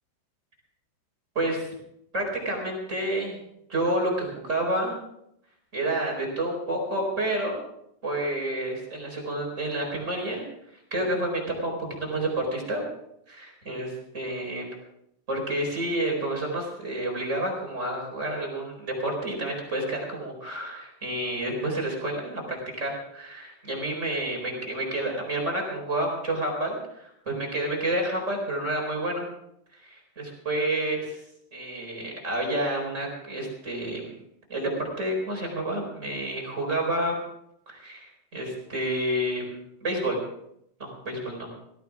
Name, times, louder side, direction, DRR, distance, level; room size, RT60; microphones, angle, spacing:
voice 1, 1.3-1.7 2.1-3.4 3.7-4.9 5.7-7.6 8.0-10.4 10.9-12.8 13.3-14.7 15.3-29.2 29.9-31.2 31.5-34.0 34.5-37.2 37.7-40.2 40.8-41.5, right 1 dB, 15° right, 0 dB, 4.0 m, -29 dB
18.5 x 15.5 x 3.6 m, 0.76 s
omnidirectional pair, 5.6 m